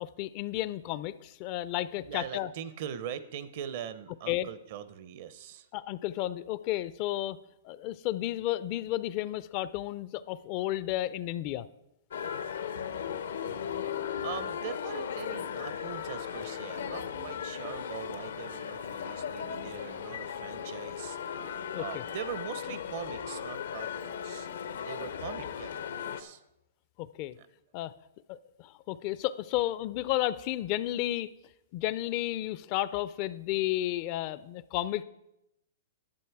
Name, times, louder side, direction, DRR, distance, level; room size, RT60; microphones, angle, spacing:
voice 1, 0.0-2.5 4.3-4.5 5.7-7.4 7.6-11.7 21.7-21.8 27.0-27.4 27.7-27.9 28.3-31.3 31.7-35.0, left 15 dB, 40° left, 16 dB, 0.4 m, -32 dB
voice 2, 2.0-5.7 14.2-24.5 24.9-26.4 27.4-27.5, right 9 dB, 55° right, 14 dB, 0.7 m, -42 dB
sound 1, 12.1-26.2, left 8 dB, 80° left, 0.7 m, -37 dB
sound 2, 12.8-18.4, right 4 dB, 80° right, 3.3 m, -57 dB
11.5 x 7.9 x 4.7 m, 0.85 s
hypercardioid pair, 140°, 0 cm